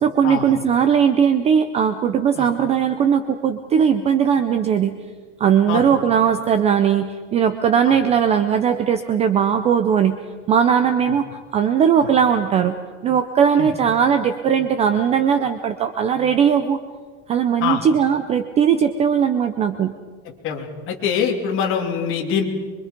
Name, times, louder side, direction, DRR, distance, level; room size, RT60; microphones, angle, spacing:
voice 1, 0.0-5.0 5.4-10.2 10.5-12.8 13.0-16.8 17.3-19.9, right 7 dB, 15° right, 9 dB, 0.5 m, -18 dB
voice 2, 20.4-22.4, left 7 dB, 30° left, 1 dB, 3.1 m, -24 dB
25.0 x 24.0 x 5.2 m, 1.5 s
supercardioid pair, 165°, 38 cm